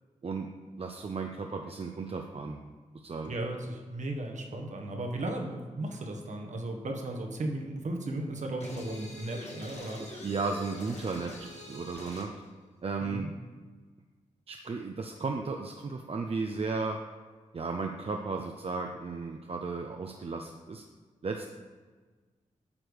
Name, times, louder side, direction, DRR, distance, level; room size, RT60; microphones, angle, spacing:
voice 1, 0.8-2.6 2.9-3.3 10.2-12.3 12.8-13.3 14.5-17.0 17.5-20.8 21.2-21.4, right 4 dB, 45° right, 3 dB, 0.6 m, -34 dB
voice 2, 3.3-10.0 13.0-13.3, right 1 dB, 60° right, 2 dB, 1.3 m, -35 dB
sound 1, 8.6-12.3, left 1 dB, 55° left, 1.8 m, -45 dB
8.8 x 3.3 x 6.3 m, 1.4 s
cardioid pair, 45°, 14 cm